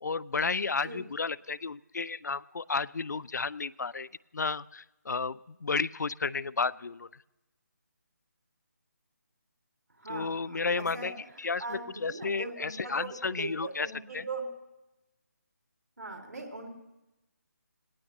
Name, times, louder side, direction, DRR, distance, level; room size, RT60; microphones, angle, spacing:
voice 1, 0.0-7.2 10.1-13.9 14.1-14.3, left 4 dB, 85° left, 21 dB, 0.4 m, -32 dB
voice 2, 10.0-11.1 11.6-14.4 16.0-16.7, right 3 dB, 80° right, 2 dB, 3.0 m, -40 dB
19.5 x 18.5 x 3.1 m, 0.98 s
figure-of-eight pair, 160°, 9 cm